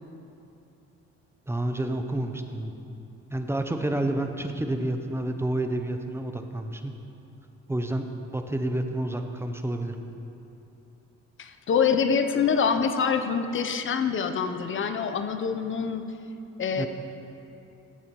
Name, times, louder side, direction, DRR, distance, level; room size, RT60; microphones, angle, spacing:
voice 1, 1.5-2.7 3.3-6.9 7.7-8.0 8.3-10.0 16.8-16.9, right 1 dB, 10° right, 6 dB, 0.6 m, -29 dB
voice 2, 11.4-16.1 16.6-16.9, left 6 dB, 40° left, 8 dB, 0.7 m, -25 dB
14.0 x 7.1 x 3.0 m, 2.8 s
cardioid pair, 90°, 30 cm